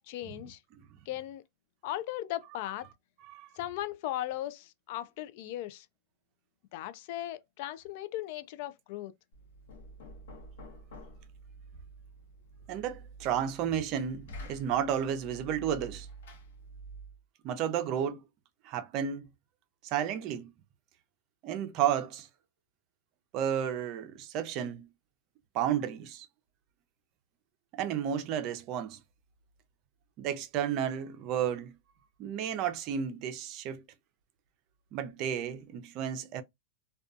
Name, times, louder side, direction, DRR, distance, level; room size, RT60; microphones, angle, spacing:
voice 1, 0.0-0.6 1.1-1.4 1.8-2.9 3.6-5.9 6.7-9.1, left 14 dB, 60° left, 0.3 m, -37 dB
Knock, 9.3-17.2, right 2 dB, 80° left, 0.9 m, -49 dB
voice 2, 12.7-16.1 17.4-18.2 18.6-19.3 19.8-20.5 21.4-22.3 23.3-24.9 25.5-26.3 27.8-29.0 30.2-31.7 32.2-33.8 34.9-36.4, right 9 dB, 45° right, 0.5 m, -32 dB
2.5 x 2.3 x 2.4 m
hypercardioid pair, 120°, 0 cm